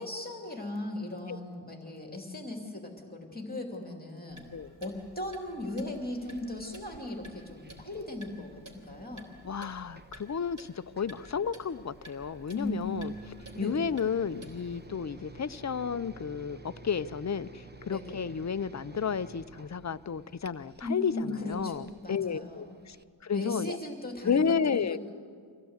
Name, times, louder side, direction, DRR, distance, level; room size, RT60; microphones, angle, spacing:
voice 1, 0.0-4.4 4.8-9.3 12.5-13.1 13.5-13.9 17.9-18.2 20.8-22.8 23.3-25.0, left 1 dB, 20° left, 1 dB, 2.7 m, -37 dB
Clock, 4.3-14.9, right 1 dB, 40° right, 3.7 m, -53 dB
sound 1, 6.0-23.0, right 2 dB, 20° right, 1.1 m, -52 dB
voice 2, 9.4-13.1 13.6-23.0 23.2-23.8 24.2-25.0, left 6 dB, 35° left, 14 dB, 0.5 m, -32 dB
25.0 x 16.5 x 8.0 m, 2.1 s
wide cardioid pair, 70°, 48 cm